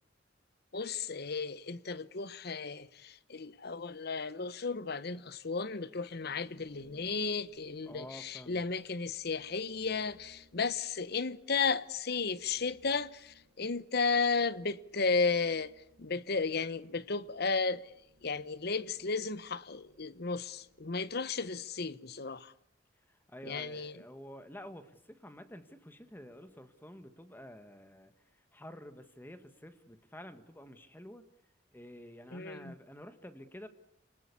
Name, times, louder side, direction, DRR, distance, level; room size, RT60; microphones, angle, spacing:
voice 1, 0.7-17.9 18.2-22.5 23.4-24.0 32.3-32.7, left 4 dB, 55° left, 1.0 m, -34 dB
sound 1, 6.0-21.8, right 1 dB, 75° right, 4.7 m, -65 dB
voice 2, 7.8-8.6 23.1-31.2 31.7-33.7, left 1 dB, 10° left, 1.5 m, -50 dB
28.0 x 20.0 x 8.4 m
head